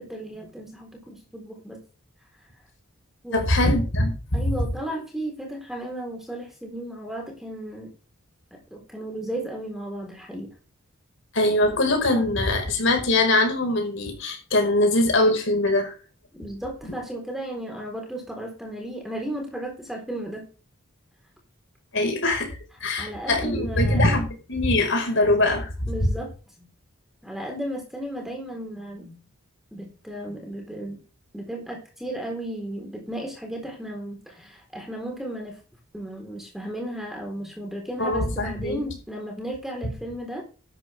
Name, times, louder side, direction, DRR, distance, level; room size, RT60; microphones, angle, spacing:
voice 1, 0.0-1.8 3.2-3.5 4.3-7.9 8.5-10.5 16.4-20.5 23.0-24.0 25.9-26.7 27.2-29.2 29.7-31.0 31.3-35.6 35.9-40.4, right 1 dB, ahead, 2 dB, 4.0 m, -34 dB
voice 2, 3.3-4.4 11.3-15.9 21.9-25.9 38.0-38.8, left 2 dB, 60° left, 3 dB, 5.1 m, -22 dB
13.0 x 11.0 x 3.5 m, 0.34 s
head